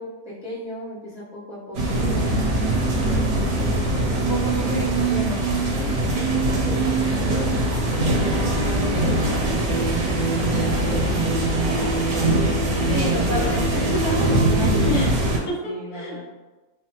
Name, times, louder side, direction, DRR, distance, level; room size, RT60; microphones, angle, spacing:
voice 1, 0.0-2.4 3.0-4.5 5.7-12.3 12.8-15.3 15.6-16.2, equal, 5° right, -11 dB, 0.3 m, -35 dB
sound 1, 1.7-15.4, right 2 dB, 65° right, 0.7 m, -22 dB
voice 2, 4.3-5.5 12.9-13.8 14.9-15.1 15.5-15.6 15.9-16.2, left 2 dB, 80° left, -5 dB, 1.5 m, -29 dB
3.2 x 2.1 x 2.8 m, 1.2 s
omnidirectional pair, 1.8 m